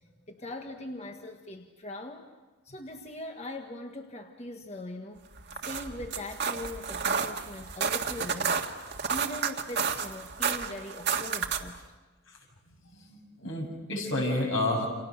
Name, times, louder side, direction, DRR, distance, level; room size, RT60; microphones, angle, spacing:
voice 1, 0.3-2.3 2.6-5.2 5.6-8.7 9.1-11.8, left 1 dB, 35° left, 4 dB, 1.4 m, -41 dB
sound 1, 5.4-11.8, right 6 dB, 60° right, 1.7 m, -31 dB
voice 2, 12.7-14.9, left 1 dB, 75° left, 1 dB, 7.4 m, -30 dB
29.5 x 29.0 x 6.5 m, 1.2 s
head